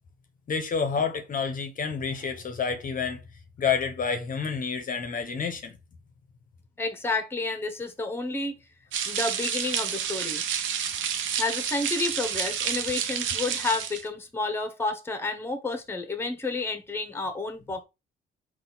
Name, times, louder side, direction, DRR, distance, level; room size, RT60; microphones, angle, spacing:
voice 1, 0.5-3.2 3.6-5.8, left 6 dB, 45° left, 0.7 m, -29 dB
voice 2, 6.8-8.6 9.1-10.4 11.4-17.8, left 3 dB, 10° left, 0.8 m, -30 dB
sound 1, 8.9-14.1, right 8 dB, 75° right, 0.6 m, -30 dB
4.0 x 2.4 x 3.8 m
cardioid pair, 90°, 20 cm